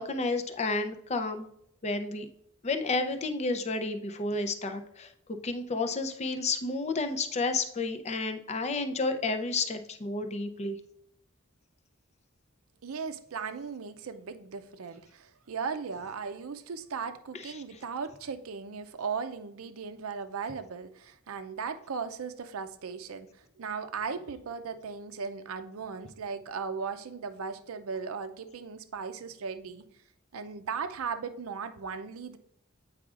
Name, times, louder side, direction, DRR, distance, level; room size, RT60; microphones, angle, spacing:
voice 1, 0.0-1.5 1.8-2.3 2.6-5.1 5.4-10.8, left 3 dB, 30° left, 7 dB, 0.5 m, -31 dB
voice 2, 12.8-29.8 30.3-32.4, right 5 dB, 85° right, 10 dB, 0.5 m, -37 dB
8.4 x 4.8 x 2.4 m, 0.72 s
head